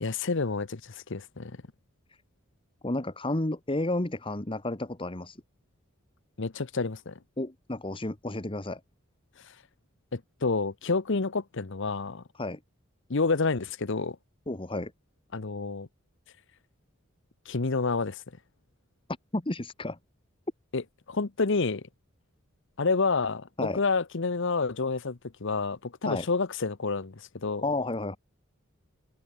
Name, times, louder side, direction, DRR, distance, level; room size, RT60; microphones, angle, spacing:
voice 1, 0.0-1.6 6.4-7.2 10.1-12.2 13.1-14.2 15.3-15.9 17.5-18.2 20.7-20.8 21.1-21.8 22.8-27.7, left 4 dB, 65° left, 0.9 m, -29 dB
voice 2, 2.8-5.4 7.4-8.8 12.4-12.6 14.5-14.9 19.3-20.0 23.6-23.8 26.0-26.2 27.6-28.2, left 2 dB, 25° left, 1.5 m, -31 dB
head